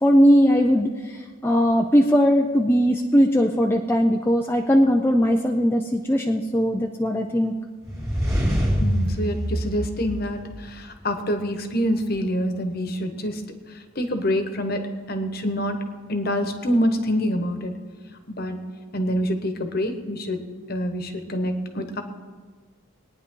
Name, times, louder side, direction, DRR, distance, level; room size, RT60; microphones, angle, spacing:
voice 1, 0.0-0.9 1.4-7.5, equal, 10° left, 2 dB, 0.4 m, -19 dB
sound 1, 7.8-10.8, equal, 15° right, 2.3 m, -25 dB
voice 2, 8.8-13.4 13.7-15.8 16.1-17.8 18.3-18.6 18.9-22.0, equal, 45° left, 7 dB, 1.2 m, -26 dB
21.0 x 9.7 x 3.8 m, 1.5 s
head